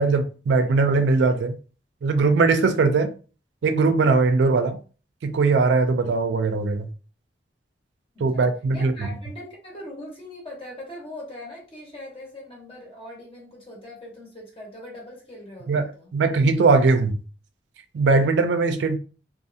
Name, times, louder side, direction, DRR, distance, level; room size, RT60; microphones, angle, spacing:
voice 1, 0.0-1.6 2.0-3.1 3.6-4.8 5.2-6.9 8.2-8.9 15.7-15.9 16.1-17.2 17.9-19.0, right 4 dB, 70° right, 0.4 m, -20 dB
voice 2, 8.3-16.1, left 1 dB, 30° left, 1.0 m, -41 dB
2.6 x 2.3 x 2.5 m
head